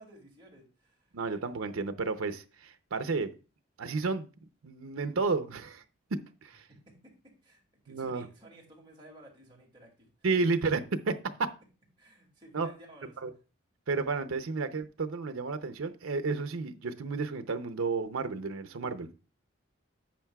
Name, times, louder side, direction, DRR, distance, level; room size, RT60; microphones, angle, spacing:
voice 1, 0.0-1.1 6.9-10.1 12.0-13.1, right 1 dB, 20° right, 2.3 m, -55 dB
voice 2, 1.1-3.3 3.8-4.3 4.6-5.8 6.1-6.6 7.9-8.3 10.2-11.2 12.5-12.7 13.2-13.3 13.9-19.1, right 4 dB, 75° right, 0.6 m, -32 dB
10.5 x 7.2 x 2.3 m
head